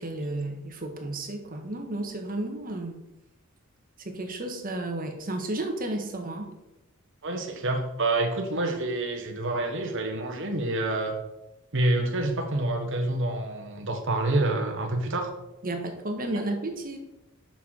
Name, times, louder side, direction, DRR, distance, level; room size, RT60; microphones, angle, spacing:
voice 1, 0.0-3.0 4.0-6.5 15.6-17.0, right 2 dB, 40° right, 4 dB, 1.4 m, -32 dB
voice 2, 7.2-11.2 11.7-15.3, right 2 dB, 60° right, 3 dB, 1.3 m, -27 dB
6.2 x 6.0 x 6.3 m, 0.92 s
head